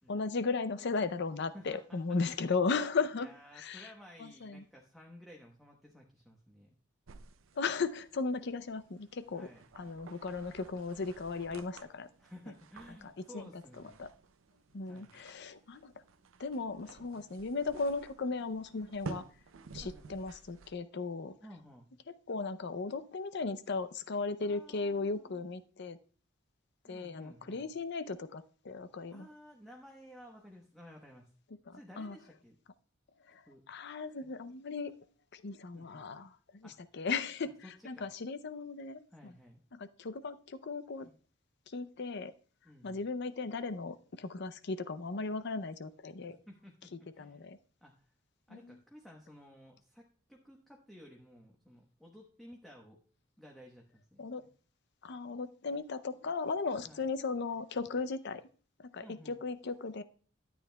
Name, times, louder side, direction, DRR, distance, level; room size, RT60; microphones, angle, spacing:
voice 1, 0.1-3.3 3.6-3.9 4.2-4.6 7.6-9.5 9.8-12.1 13.0-13.5 14.0-14.1 14.7-15.9 16.4-19.2 19.7-21.4 22.3-26.0 26.9-29.3 31.7-32.2 33.3-33.4 33.7-34.9 35.3-37.5 37.8-39.3 39.7-41.1 41.7-42.3 42.8-46.4 47.2-47.6 48.5-48.7 54.2-54.4 55.0-58.4 58.8-60.0, left 4 dB, 60° left, 0.6 m, -36 dB
voice 2, 1.5-2.0 2.7-2.9 3.2-6.8 9.3-9.7 12.2-14.0 14.9-15.2 19.8-20.1 21.4-21.9 24.4-25.4 26.8-27.7 29.1-31.3 31.7-32.5 33.5-33.6 35.7-36.1 36.6-36.8 37.4-38.1 39.1-39.6 41.0-41.1 42.6-43.0 46.3-47.4 47.8-47.9 48.5-53.0 53.4-54.5 56.8-57.1 59.0-59.4, equal, ahead, 1.0 m, -54 dB
sound 1, 7.1-20.7, right 4 dB, 85° right, 0.6 m, -52 dB
12.5 x 8.8 x 2.3 m
head